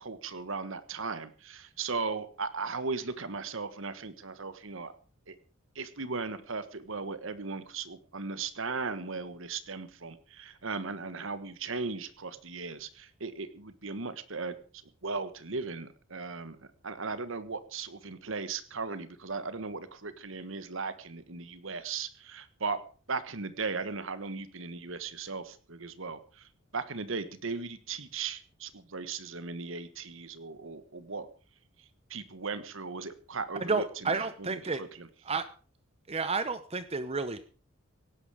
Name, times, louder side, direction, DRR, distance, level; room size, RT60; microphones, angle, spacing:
voice 1, 0.0-4.9 5.3-5.4 5.7-14.5 15.0-16.6 16.8-22.8 23.1-31.3 32.1-35.1, right 4 dB, 65° right, 13 dB, 1.4 m, -37 dB
voice 2, 33.6-34.8 35.2-35.5 36.1-37.5, right 4 dB, 30° right, 12 dB, 0.8 m, -31 dB
17.5 x 11.5 x 4.9 m, 0.39 s
head